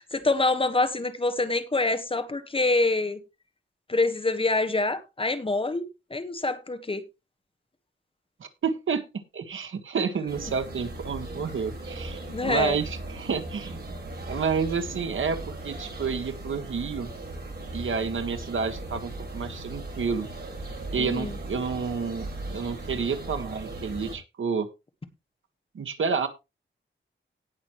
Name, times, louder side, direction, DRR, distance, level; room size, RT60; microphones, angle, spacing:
voice 1, 0.0-3.2 3.9-7.0 12.2-12.8 21.0-21.3, left 2 dB, 25° left, 1.4 m, -26 dB
voice 2, 8.4-9.0 9.3-13.8 14.3-17.1 17.7-20.3 20.9-24.7 25.7-26.3, right 5 dB, 85° right, 1.6 m, -30 dB
sound 1, 10.3-24.2, right 2 dB, 55° right, 6.0 m, -38 dB
18.0 x 6.1 x 3.1 m
wide cardioid pair, 145°, 20 cm